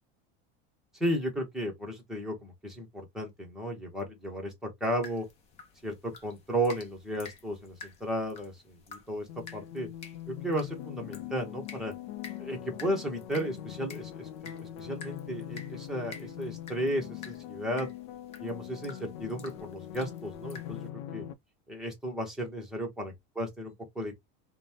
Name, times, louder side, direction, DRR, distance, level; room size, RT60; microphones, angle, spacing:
voice 1, 1.0-5.3 5.8-9.3 9.5-9.9 10.3-11.9 12.4-17.9 18.4-21.2 21.7-24.1, equal, ahead, 0.9 m, -34 dB
sound 1, 5.0-20.9, left 5 dB, 20° left, 0.5 m, -51 dB
sound 2, 9.3-21.3, left 12 dB, 85° left, 0.7 m, -42 dB
5.2 x 2.2 x 2.8 m
supercardioid pair, 180°, 33 cm